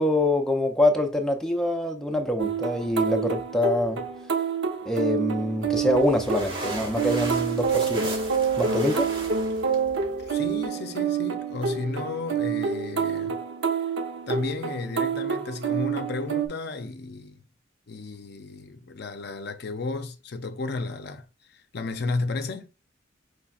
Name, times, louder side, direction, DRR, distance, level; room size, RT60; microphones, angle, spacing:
voice 1, 0.0-4.0 4.9-8.1 8.6-9.1, left 1 dB, 5° left, 0.5 m, -25 dB
sound 1, 2.4-16.5, right 6 dB, 70° right, 0.8 m, -28 dB
sound 2, 5.6-10.7, right 1 dB, 25° right, 1.0 m, -37 dB
voice 2, 10.2-13.4 14.3-17.4 17.9-21.2 21.5-22.7, left 3 dB, 55° left, 0.5 m, -33 dB
5.5 x 3.3 x 2.3 m
head